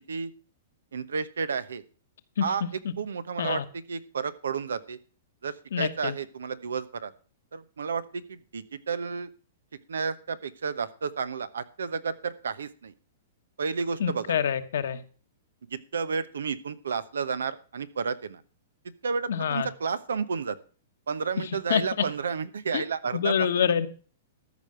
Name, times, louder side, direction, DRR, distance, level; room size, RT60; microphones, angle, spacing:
voice 1, 0.9-1.8 2.4-2.6 3.0-5.0 5.4-7.1 7.5-9.3 9.9-12.9 13.6-14.3 15.7-18.4 19.0-20.6 21.1-23.5, right 5 dB, 90° right, 16 dB, 1.0 m, -31 dB
voice 2, 2.4-2.9 3.4-3.6 5.7-6.1 14.0-15.0 19.3-19.7 21.7-21.8 22.7-22.8 23.1-23.9, left 8 dB, 75° left, 10 dB, 1.2 m, -26 dB
13.5 x 5.1 x 7.7 m, 0.39 s
hypercardioid pair, 130°, 0 cm